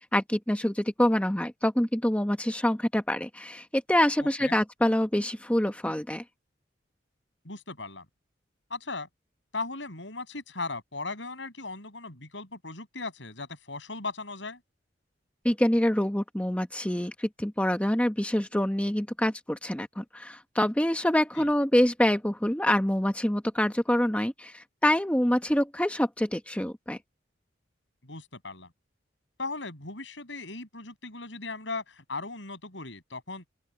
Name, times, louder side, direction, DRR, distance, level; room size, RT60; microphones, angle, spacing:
voice 1, 0.1-6.2 15.4-27.0, left 1 dB, 5° left, 0.9 m, -26 dB
voice 2, 4.2-4.5 7.4-8.1 8.7-9.1 9.5-14.6 21.4-21.5 28.0-28.7 29.4-33.4, left 3 dB, 75° left, 7.1 m, -37 dB
open air
head